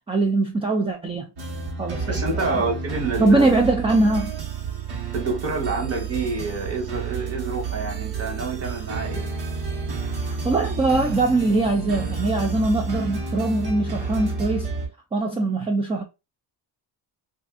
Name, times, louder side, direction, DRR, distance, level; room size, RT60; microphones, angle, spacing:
voice 1, 0.1-1.3 1.8-2.6 3.2-4.3 10.3-14.7 15.1-16.0, right 2 dB, 15° right, 0.3 m, -22 dB
sound 1, 1.4-14.9, right 4 dB, 60° right, 1.2 m, -30 dB
voice 2, 2.1-3.5 5.1-9.3, right 3 dB, 35° right, 1.0 m, -28 dB
2.5 x 2.4 x 3.5 m
cardioid pair, 140°, 44 cm